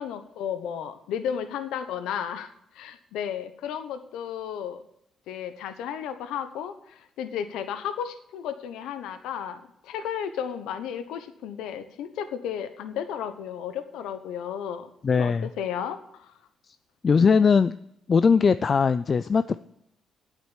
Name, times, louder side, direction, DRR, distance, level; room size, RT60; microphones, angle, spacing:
voice 1, 0.0-4.8 5.3-16.3, left 8 dB, 90° left, 10 dB, 1.0 m, -33 dB
voice 2, 15.0-15.5 17.0-17.8 18.1-19.6, left 5 dB, 40° left, 14 dB, 0.4 m, -20 dB
9.2 x 7.5 x 8.2 m, 0.76 s
cardioid pair, 90°, 0 cm